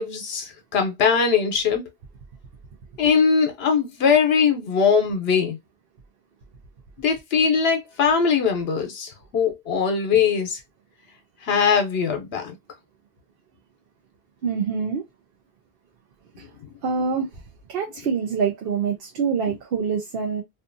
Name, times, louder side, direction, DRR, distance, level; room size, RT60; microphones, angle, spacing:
voice 1, 0.0-1.9 3.0-5.6 7.0-10.6 11.4-12.5, left 6 dB, 80° left, 0.9 m, -21 dB
voice 2, 14.4-15.0 16.8-17.3 17.7-20.4, right 6 dB, 70° right, 0.8 m, -25 dB
2.6 x 2.4 x 2.5 m
omnidirectional pair, 1.0 m